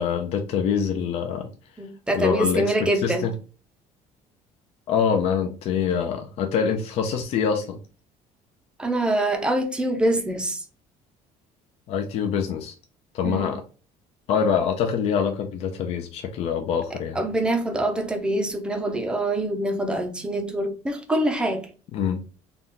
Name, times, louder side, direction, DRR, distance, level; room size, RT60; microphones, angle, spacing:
voice 1, 0.0-1.5 2.1-3.3 4.9-7.8 11.9-12.7 13.1-13.6 14.3-17.2 21.9-22.2, left 7 dB, 45° left, 0.5 m, -25 dB
voice 2, 1.8-3.3 8.8-10.6 13.2-13.5 17.1-21.7, right 1 dB, 5° right, 0.5 m, -25 dB
3.9 x 2.3 x 3.6 m
cardioid pair, 175°, 14 cm